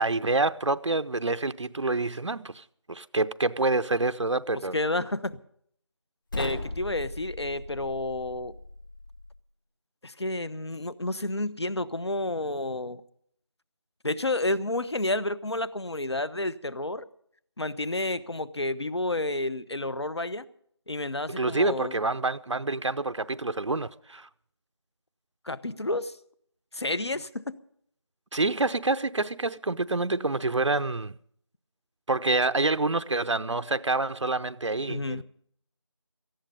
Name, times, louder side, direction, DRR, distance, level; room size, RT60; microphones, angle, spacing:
voice 1, 0.0-4.8 21.3-24.3 28.3-31.1 32.1-35.2, right 3 dB, 80° right, 0.7 m, -27 dB
voice 2, 4.7-5.4 6.4-8.5 10.0-13.0 14.0-17.1 17.6-20.5 20.9-21.9 25.4-26.2 26.7-27.6 34.9-35.2, left 2 dB, 60° left, 1.0 m, -30 dB
sound 1, 6.3-9.4, left 2 dB, 45° left, 2.2 m, -38 dB
18.0 x 14.5 x 5.2 m
figure-of-eight pair, 175°, 15 cm